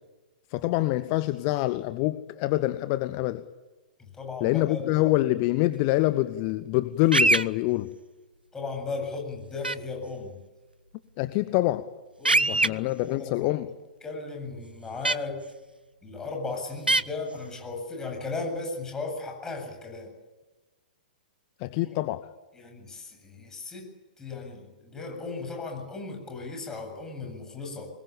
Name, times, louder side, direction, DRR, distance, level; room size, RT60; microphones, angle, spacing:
voice 1, 0.5-3.4 4.4-7.9 11.2-11.8 12.5-13.7 21.6-22.3, left 17 dB, 35° left, 1.0 m, -25 dB
voice 2, 4.0-5.1 8.5-10.4 11.5-11.6 12.2-13.5 14.0-15.4 16.0-20.1 21.8-22.0 22.5-23.9 24.2-27.9, left 3 dB, 10° left, 7.9 m, -36 dB
sound 1, 7.1-7.4 9.6-9.8 12.3-12.7 15.1-15.2 16.9-17.0, right 2 dB, 85° right, 0.8 m, -21 dB
25.5 x 21.5 x 8.8 m
figure-of-eight pair, 115°, 5 cm